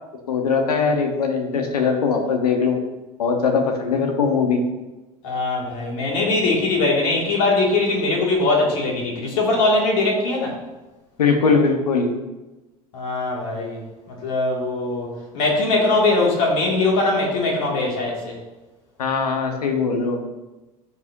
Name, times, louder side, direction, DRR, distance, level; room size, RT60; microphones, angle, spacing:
voice 1, 0.3-2.8 3.2-4.6 11.2-12.1 19.0-20.4, left 5 dB, 75° left, 4 dB, 1.5 m, -20 dB
voice 2, 5.2-10.6 12.9-18.4, left 2 dB, 60° left, -2 dB, 2.9 m, -21 dB
15.0 x 5.0 x 3.0 m, 1.1 s
figure-of-eight pair, 75°, 20 cm